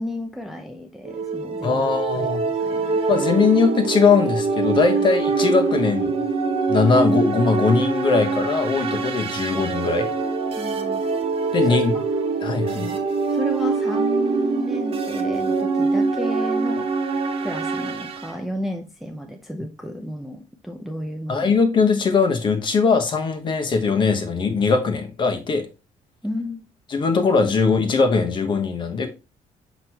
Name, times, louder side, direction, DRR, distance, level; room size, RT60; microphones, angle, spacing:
voice 1, 0.0-1.9 2.1-3.0 10.5-11.1 11.7-12.0 12.7-13.0 13.3-16.9 17.4-21.5 26.2-26.6, left 1 dB, ahead, 0.6 m, -32 dB
sound 1, 1.0-18.3, right 4 dB, 45° right, 1.0 m, -24 dB
voice 2, 1.6-2.4 3.1-6.1 6.7-10.1 11.5-11.9 12.4-12.9 21.3-25.7 26.9-29.1, left 5 dB, 35° left, 1.1 m, -20 dB
6.2 x 5.2 x 2.9 m
cardioid pair, 165°, 14 cm